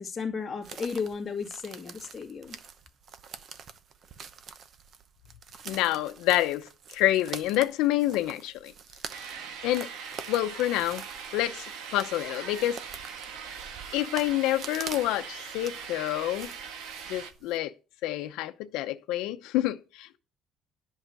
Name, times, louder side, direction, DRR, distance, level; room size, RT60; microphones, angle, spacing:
voice 1, 0.0-2.6, left 5 dB, 20° left, 2.1 m, -34 dB
sound 1, 0.6-17.6, right 6 dB, 40° right, 0.9 m, -46 dB
voice 2, 5.7-8.7 9.6-9.9 10.3-11.0 11.3-11.7 11.9-12.8 13.9-16.5 17.1-17.7 18.0-20.2, left 14 dB, 90° left, 0.7 m, -28 dB
sound 2, 9.1-17.3, right 6 dB, 80° right, 1.6 m, -41 dB
11.0 x 5.6 x 7.6 m
cardioid pair, 160°, 0 cm